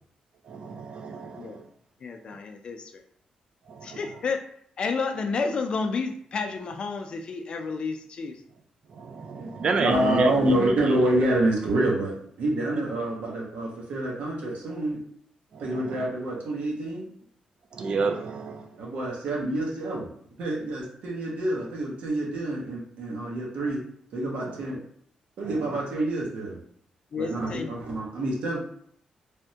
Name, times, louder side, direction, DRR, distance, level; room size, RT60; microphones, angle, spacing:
voice 1, 0.5-1.6 3.7-4.0 9.0-11.0 15.5-15.8 17.7-18.7, right 4 dB, 45° right, 6 dB, 0.3 m, -29 dB
voice 2, 2.0-3.0 3.8-4.4 4.8-8.4 19.1-19.2 27.1-27.7, left 4 dB, 45° left, 6 dB, 0.4 m, -31 dB
voice 3, 9.4-15.0 15.6-17.1 18.8-20.1 20.4-23.8 24.1-24.8 25.4-26.6 27.2-28.6, right 1 dB, 80° right, -3 dB, 0.9 m, -27 dB
3.4 x 2.1 x 2.7 m, 0.64 s
cardioid pair, 130°, 2 cm